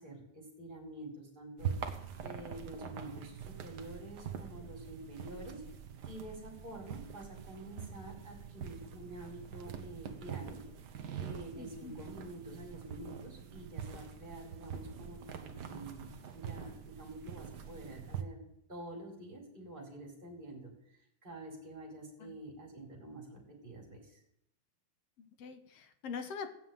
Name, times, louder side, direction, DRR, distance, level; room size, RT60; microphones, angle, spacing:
voice 1, 0.0-1.8 2.2-5.6 6.0-10.6 11.2-18.4 18.7-20.7 21.2-24.2, right 1 dB, 15° right, 0 dB, 4.4 m, -48 dB
sound 1, 1.6-18.2, right 8 dB, 75° right, 0.9 m, -44 dB
voice 2, 11.6-12.0 22.2-22.3 25.2-26.5, left 5 dB, 60° left, 8 dB, 2.0 m, -44 dB
17.0 x 7.4 x 9.1 m, 0.76 s
omnidirectional pair, 3.5 m